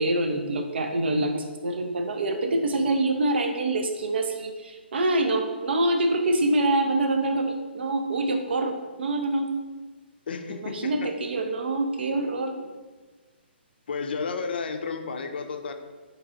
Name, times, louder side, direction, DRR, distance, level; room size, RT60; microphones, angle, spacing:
voice 1, 0.0-9.5 10.5-12.5, right 2 dB, 65° right, 4 dB, 0.4 m, -25 dB
voice 2, 10.3-11.1 12.6-12.7 13.9-15.7, left 5 dB, 60° left, 6 dB, 0.4 m, -32 dB
4.6 x 2.8 x 2.4 m, 1.3 s
figure-of-eight pair, 130°, 6 cm